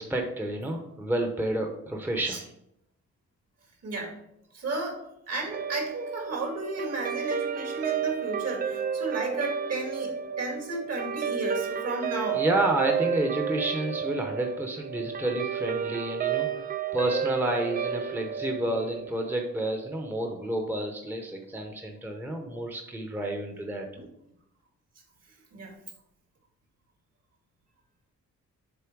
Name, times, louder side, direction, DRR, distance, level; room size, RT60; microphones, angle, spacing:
voice 1, 0.0-2.5 12.3-16.5 16.9-23.9, right 1 dB, 5° right, 2 dB, 0.8 m, -30 dB
voice 2, 3.8-4.2 4.5-12.4 24.0-24.1 25.5-25.8, right 2 dB, 55° right, 1 dB, 2.2 m, -33 dB
Guitar, 5.5-20.1, right 7 dB, 30° right, 0.4 m, -32 dB
7.0 x 4.4 x 4.6 m, 0.76 s
wide cardioid pair, 140°, 29 cm